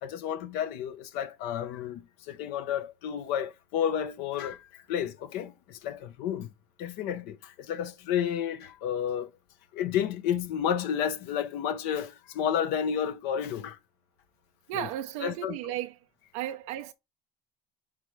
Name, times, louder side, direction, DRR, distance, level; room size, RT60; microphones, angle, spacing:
voice 1, 0.0-6.5 6.8-9.3 9.7-13.8 14.7-14.9 15.2-15.6, left 9 dB, 70° left, 0.8 m, -31 dB
voice 2, 14.7-16.0 16.3-16.9, right 13 dB, 85° right, 0.5 m, -34 dB
9.4 x 3.6 x 3.2 m
supercardioid pair, 95°, 18 cm